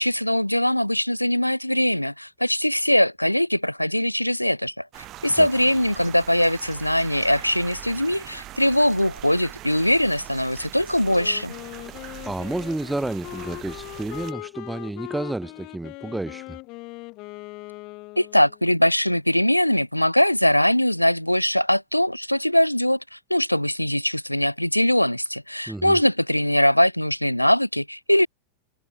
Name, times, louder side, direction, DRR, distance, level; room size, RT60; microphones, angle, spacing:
voice 1, 0.0-4.9 5.2-11.5 18.2-28.3, left 1 dB, 90° left, 0.7 m, -21 dB
sound 1, 4.9-14.3, right 16 dB, 35° right, 7.7 m, -41 dB
Wind instrument woodwind instrument, 11.0-18.7, left 24 dB, 40° left, 2.2 m, -40 dB
voice 2, 11.9-16.6 25.7-26.0, right 2 dB, 5° right, 1.7 m, -31 dB
figure-of-eight pair, 90°, 0 cm